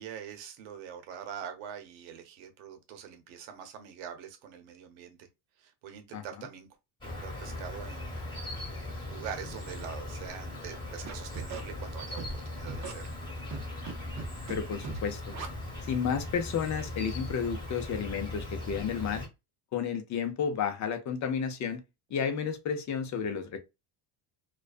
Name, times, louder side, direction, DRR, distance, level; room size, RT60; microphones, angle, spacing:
voice 1, 0.0-5.3 5.6-6.7 7.1-8.2 9.0-13.1, right 8 dB, 75° right, 0.9 m, -44 dB
Insect, 7.0-19.3, left 1 dB, 10° left, 1.1 m, -39 dB
Scratching (performance technique), 11.0-11.6 12.2-12.3 12.7-12.9 13.5-13.9 14.2-14.6 14.8-15.0 15.3-15.5, right 5 dB, 35° right, 0.6 m, -38 dB
voice 2, 14.5-15.3 15.8-19.3 19.7-21.8 22.1-23.6, left 7 dB, 35° left, 0.6 m, -32 dB
2.4 x 2.2 x 2.3 m
cardioid pair, 115°, 49 cm